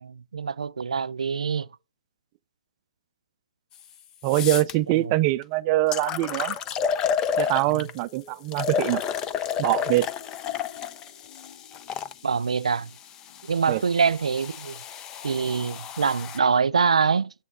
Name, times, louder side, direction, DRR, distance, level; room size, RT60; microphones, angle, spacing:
voice 1, 0.0-1.7 4.9-5.1 7.7-7.8 12.2-12.9 13.5-14.8 15.2-17.3, right 5 dB, 80° right, 0.5 m, -24 dB
sound 1, 3.7-3.8 4.2-4.7 5.4-5.5 5.9-8.0 8.5-12.1 13.0-16.4, left 7 dB, 20° left, 0.5 m, -31 dB
voice 2, 4.2-6.6 7.4-9.0 9.6-10.1 13.7-13.8, right 17 dB, 30° right, 0.5 m, -23 dB
sound 2, 6.4-15.4, left 4 dB, 45° left, 3.4 m, -53 dB
7.9 x 6.3 x 6.6 m
hypercardioid pair, 145°, 3 cm